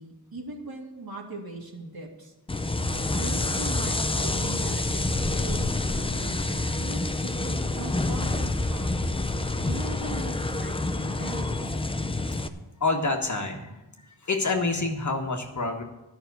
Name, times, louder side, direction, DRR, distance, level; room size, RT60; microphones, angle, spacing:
voice 1, 0.0-2.3 3.1-9.1 9.6-11.5, right 2 dB, 55° right, 0 dB, 2.5 m, -40 dB
sound 1, 2.5-12.5, left 2 dB, 15° left, 0.6 m, -27 dB
voice 2, 12.8-13.7 14.2-15.8, left 3 dB, 40° left, 3 dB, 1.5 m, -27 dB
12.0 x 6.2 x 8.2 m, 1.0 s
wide cardioid pair, 105°, 43 cm